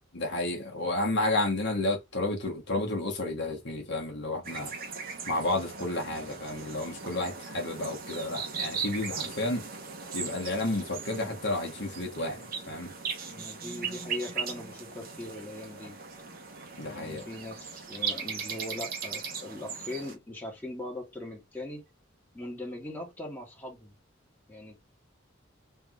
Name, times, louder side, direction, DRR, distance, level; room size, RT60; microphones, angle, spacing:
voice 1, 0.1-4.7 5.3-9.6 10.1-12.9 16.8-17.3, left 2 dB, 60° left, 1.3 m, -31 dB
sound 1, 4.4-20.1, right 6 dB, 50° right, 1.1 m, -38 dB
voice 2, 13.3-16.0 16.9-21.9 22.3-23.9 24.5-24.8, left 1 dB, 10° left, 1.6 m, -40 dB
3.4 x 2.9 x 3.6 m
head